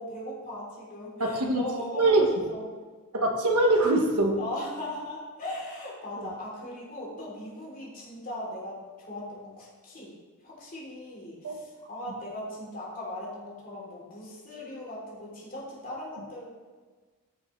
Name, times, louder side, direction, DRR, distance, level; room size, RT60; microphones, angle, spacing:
voice 1, 0.0-2.7 4.4-8.8 9.1-10.1 10.4-16.4, left 1 dB, 40° left, -4 dB, 3.3 m, -38 dB
voice 2, 1.2-1.6 2.0-2.3 3.1-4.4 6.2-6.3 11.4-11.6, right 2 dB, 85° right, 1 dB, 1.3 m, -23 dB
15.5 x 6.6 x 3.2 m, 1.4 s
head